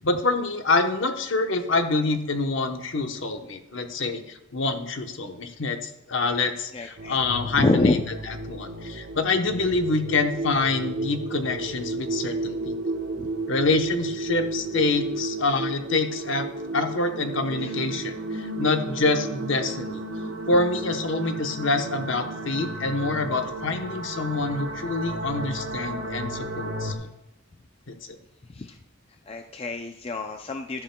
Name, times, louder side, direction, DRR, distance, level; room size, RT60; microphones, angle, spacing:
voice 1, 0.0-8.0 8.5-12.8 13.5-16.5 16.7-20.0 20.5-27.1 27.9-28.2, left 3 dB, 60° left, 6 dB, 0.9 m, -26 dB
voice 2, 6.7-7.2 7.6-8.0 13.2-13.3 17.6-17.7 28.6-28.7 29.3-30.8, left 2 dB, 30° left, 5 dB, 0.4 m, -26 dB
sound 1, 7.0-26.9, right 2 dB, 65° right, 1.3 m, -33 dB
12.5 x 11.5 x 2.2 m, 0.89 s
head